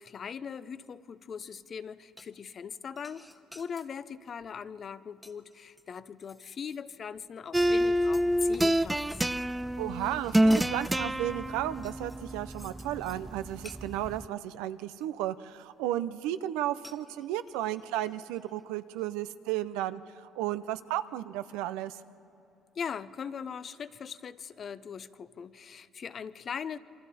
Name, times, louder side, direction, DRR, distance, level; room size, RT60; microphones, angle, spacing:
voice 1, 0.0-9.1 22.8-26.8, left 7 dB, 50° left, 15 dB, 0.7 m, -40 dB
sound 1, 2.2-2.6 3.0-3.9 4.4-4.7 5.0-6.8 7.1-7.2 7.6-9.3 9.6-11.4 11.8-13.2 13.6-13.8 14.4-14.5 15.0-15.7 16.8-18.6 19.0-19.1, left 1 dB, 5° left, 1.3 m, -52 dB
sound 2, 7.5-14.3, equal, 10° right, 0.5 m, -28 dB
voice 2, 9.8-20.0 20.4-22.0, right 13 dB, 85° right, 13 dB, 0.6 m, -34 dB
27.5 x 24.5 x 4.2 m, 2.9 s
supercardioid pair, 75°, 0 cm